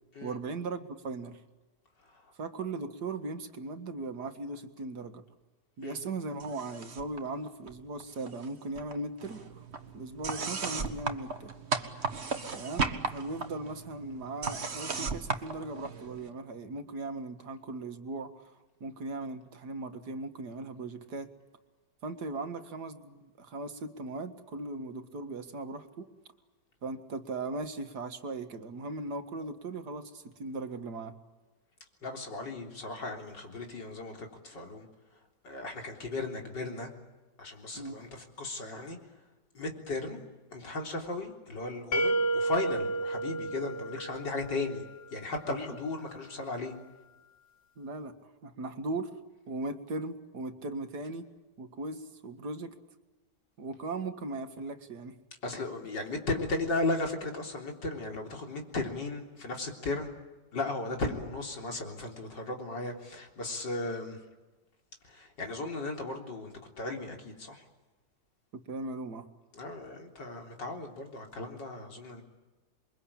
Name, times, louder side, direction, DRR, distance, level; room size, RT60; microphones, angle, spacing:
voice 1, 0.2-1.4 2.4-5.2 5.8-9.7 9.9-11.5 12.5-18.5 18.8-21.3 22.0-26.1 26.8-31.1 37.8-38.0 45.5-45.7 47.8-48.1 48.4-49.1 49.5-51.2 51.6-52.7 53.6-55.2 68.7-69.3, right 2 dB, 65° right, 7 dB, 2.3 m, -38 dB
voice 2, 2.0-2.3 5.8-6.0 32.0-34.9 35.1-36.9 37.4-39.0 39.5-40.2 40.5-44.8 45.1-46.7 55.4-60.1 60.5-64.2 65.0-67.7 69.5-72.2, left 2 dB, 85° left, 2 dB, 4.3 m, -36 dB
sound 1, 6.4-7.2 7.5-8.5 8.8-16.3, right 4 dB, 40° right, 1.8 m, -36 dB
sound 2, 41.9-44.8, right 2 dB, 35° left, 1.8 m, -31 dB
28.0 x 23.0 x 8.7 m, 1.2 s
omnidirectional pair, 1.9 m